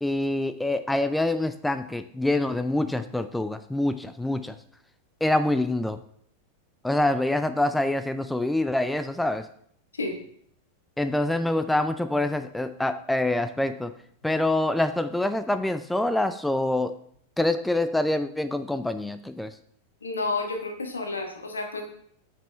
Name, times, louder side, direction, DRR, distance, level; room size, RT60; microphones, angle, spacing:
voice 1, 0.0-4.6 5.2-6.0 6.8-9.5 11.0-13.9 14.2-17.0 17.4-19.5, left 1 dB, 5° left, 11 dB, 0.3 m, -25 dB
voice 2, 20.0-21.8, left 3 dB, 75° left, 3 dB, 1.3 m, -30 dB
8.8 x 5.0 x 3.4 m, 0.65 s
figure-of-eight pair, 90°, 0 cm